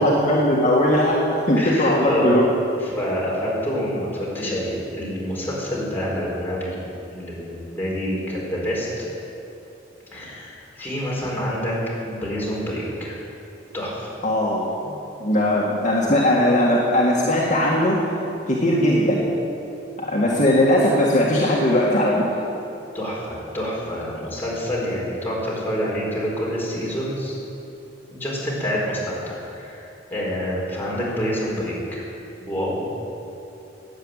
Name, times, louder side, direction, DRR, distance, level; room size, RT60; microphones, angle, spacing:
voice 1, 0.0-2.4 14.2-14.9 15.2-18.0 18.5-19.3 20.0-22.2, left 1 dB, 40° left, -5 dB, 1.8 m, -19 dB
voice 2, 1.6-2.3 2.8-6.8 7.1-9.1 10.1-11.7 12.0-13.2 13.7-14.1 22.9-27.4 28.1-32.0 32.5-32.9, equal, 10° left, -6 dB, 4.5 m, -27 dB
16.0 x 9.7 x 9.0 m, 2.9 s
head